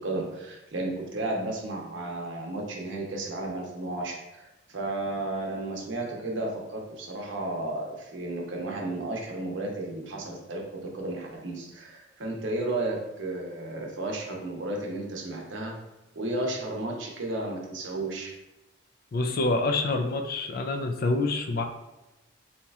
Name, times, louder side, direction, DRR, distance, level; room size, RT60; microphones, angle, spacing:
voice 1, 0.0-15.7 16.1-18.3, right 2 dB, 65° right, 0 dB, 0.7 m, -33 dB
voice 2, 19.1-21.6, left 2 dB, 50° left, 5 dB, 0.3 m, -27 dB
4.1 x 2.9 x 2.3 m, 1.0 s
head